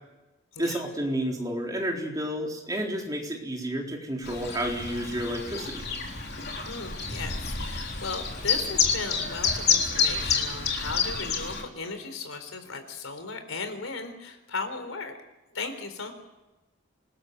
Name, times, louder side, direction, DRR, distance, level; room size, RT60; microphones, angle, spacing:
voice 1, 0.6-5.8, equal, 15° right, 0 dB, 4.1 m, -31 dB
Chirp tweet, 4.2-11.6, left 6 dB, 50° left, 3.8 m, -28 dB
voice 2, 6.6-15.2 15.5-16.1, left 4 dB, 80° left, 8 dB, 4.1 m, -36 dB
27.0 x 20.5 x 8.0 m, 1.1 s
head